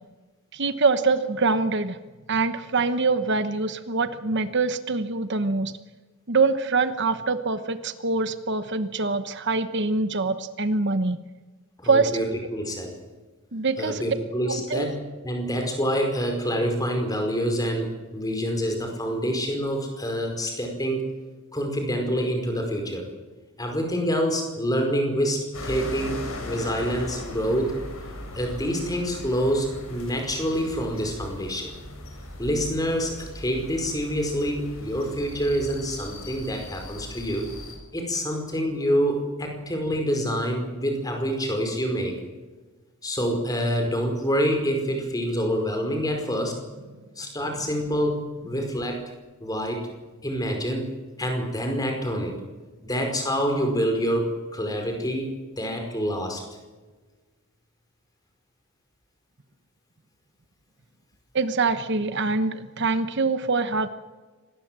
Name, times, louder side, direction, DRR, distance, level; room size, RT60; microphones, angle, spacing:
voice 1, 0.5-2.0 2.3-5.7 6.3-11.2 11.8-12.1 13.5-14.0 14.5-14.9 61.3-63.9, right 4 dB, 50° right, 11 dB, 1.1 m, -24 dB
voice 2, 11.8-12.2 12.5-12.9 13.8-15.0 15.2-21.0 21.5-23.1 23.6-27.7 28.3-31.7 32.4-37.4 37.9-42.2 43.0-46.6 47.1-49.0 49.4-49.9 50.2-50.9 51.2-52.3 52.8-56.5, equal, 15° left, 4 dB, 5.0 m, -26 dB
sound 1, 25.5-37.7, left 1 dB, 70° left, 7.0 m, -39 dB
25.5 x 19.5 x 7.6 m, 1.3 s
head